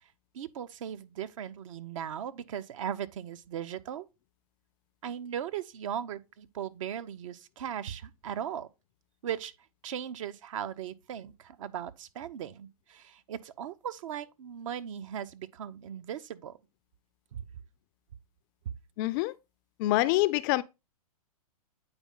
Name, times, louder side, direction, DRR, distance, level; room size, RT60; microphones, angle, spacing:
voice 1, 0.3-4.1 5.0-8.7 9.2-9.5 9.8-16.6 17.3-17.4 18.6-18.7, right 9 dB, 60° right, 0.8 m, -38 dB
voice 2, 19.0-19.3 19.8-20.6, left 17 dB, 35° left, 0.4 m, -26 dB
8.8 x 4.4 x 3.7 m
hypercardioid pair, 125°, 19 cm